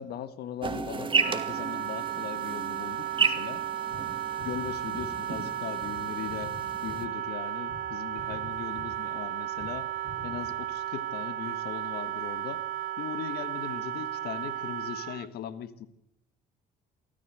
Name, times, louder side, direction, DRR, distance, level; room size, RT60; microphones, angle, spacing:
voice 1, 0.0-3.7 4.4-9.9 10.2-12.7 13.0-15.9, left 10 dB, 70° left, 13 dB, 1.6 m, -39 dB
sound 1, 0.6-7.0, right 5 dB, 30° right, 2.1 m, -33 dB
Wind instrument woodwind instrument, 1.2-15.3, right 11 dB, 55° right, 0.9 m, -34 dB
sound 2, 3.5-3.6 3.9-4.1 4.4-5.5 5.8-6.0 6.3-7.4 7.7-7.9 8.1-9.3 9.6-9.8 10.0-10.7, left 4 dB, 50° left, 5.9 m, -46 dB
24.0 x 14.0 x 7.8 m, 0.80 s
cardioid pair, 110°, 17 cm